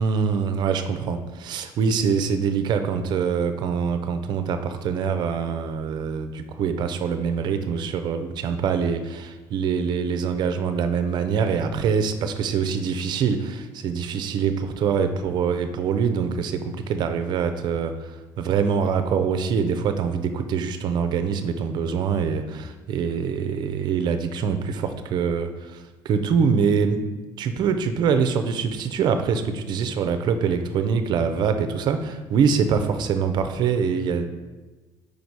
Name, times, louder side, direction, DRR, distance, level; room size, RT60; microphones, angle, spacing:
voice 1, 0.0-27.1 27.4-34.3, right 6 dB, 55° right, 8 dB, 0.5 m, -24 dB
5.1 x 4.0 x 4.6 m, 1.2 s
cardioid pair, 125°, 9 cm